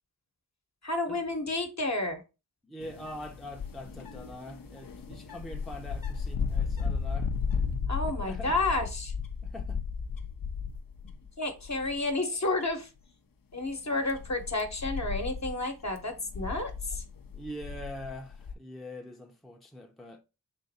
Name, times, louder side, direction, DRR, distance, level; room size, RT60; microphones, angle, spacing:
voice 1, 0.8-2.2 7.9-9.1 11.4-12.9 13.5-17.0, left 2 dB, 45° left, 1.0 m, -31 dB
voice 2, 2.6-7.3 8.1-8.6 9.4-9.8 17.3-20.2, left 1 dB, ahead, 0.7 m, -43 dB
sound 1, 2.8-11.3 11.6-12.1 12.6-12.7 13.6-18.5, left 5 dB, 60° left, 0.6 m, -35 dB
3.7 x 2.6 x 4.1 m
cardioid pair, 45°, 39 cm